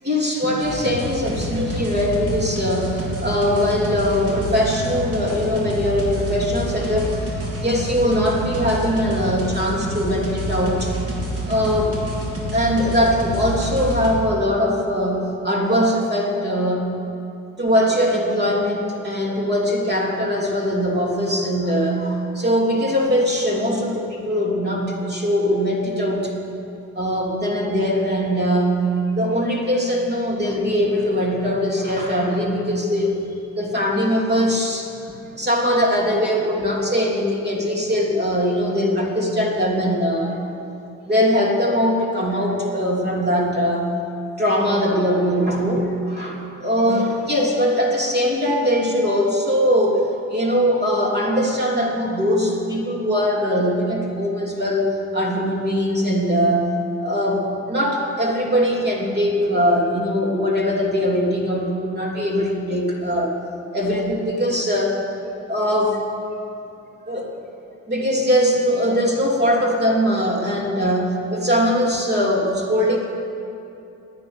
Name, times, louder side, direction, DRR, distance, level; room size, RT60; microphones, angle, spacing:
voice 1, 0.0-10.9 11.5-12.0 12.5-16.9 17.6-26.4 26.9-33.2 33.5-34.9 35.3-40.4 41.1-43.9 44.4-56.7 57.0-63.4 63.7-65.0 65.5-66.0 67.1-67.3 67.9-73.0, equal, 35° right, -1 dB, 3.0 m, -21 dB
sound 1, 0.6-14.1, right 1 dB, 50° right, 3.2 m, -28 dB
10.5 x 9.5 x 9.9 m, 2.7 s
cardioid pair, 90°, 30 cm